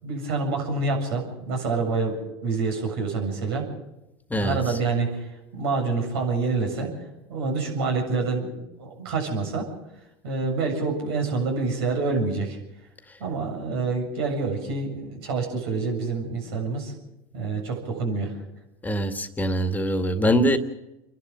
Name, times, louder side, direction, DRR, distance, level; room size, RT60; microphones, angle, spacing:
voice 1, 0.0-3.6 4.4-6.9 7.3-9.7 10.2-12.6 13.2-16.9 17.3-18.4, right 3 dB, 75° right, 2 dB, 7.5 m, -27 dB
voice 2, 4.3-4.8 13.1-13.2 18.8-20.6, equal, 15° left, 7 dB, 2.0 m, -23 dB
29.5 x 12.0 x 7.6 m, 0.93 s
hypercardioid pair, 95°, 13 cm